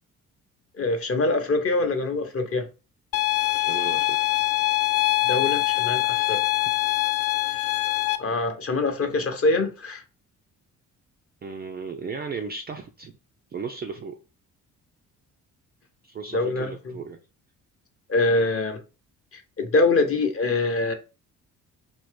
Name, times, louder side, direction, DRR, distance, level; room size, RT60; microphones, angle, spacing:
voice 1, 0.7-2.7 5.3-6.5 7.5-7.6 8.2-10.0 16.3-16.9 18.1-18.8 19.3-20.9, left 2 dB, 30° left, 0.8 m, -24 dB
sound 1, 3.1-8.2, left 18 dB, 55° left, 0.5 m, -23 dB
voice 2, 3.6-4.3 11.4-13.1 13.5-14.2 16.0-17.2, right 5 dB, 25° right, 0.4 m, -35 dB
2.6 x 2.6 x 3.5 m
figure-of-eight pair, 45°, 44 cm